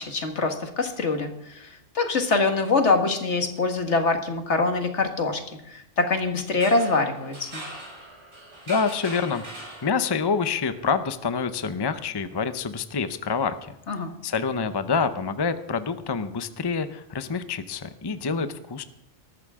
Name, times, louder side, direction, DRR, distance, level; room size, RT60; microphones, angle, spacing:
voice 1, 0.0-7.6 13.9-14.1, left 3 dB, 75° left, 5 dB, 2.0 m, -24 dB
sound 1, 6.5-10.3, right 1 dB, 60° right, 6.0 m, -41 dB
voice 2, 8.7-9.4 9.8-13.8 14.2-18.8, left 5 dB, 25° left, 11 dB, 0.7 m, -27 dB
19.5 x 13.5 x 3.6 m, 0.86 s
omnidirectional pair, 1.2 m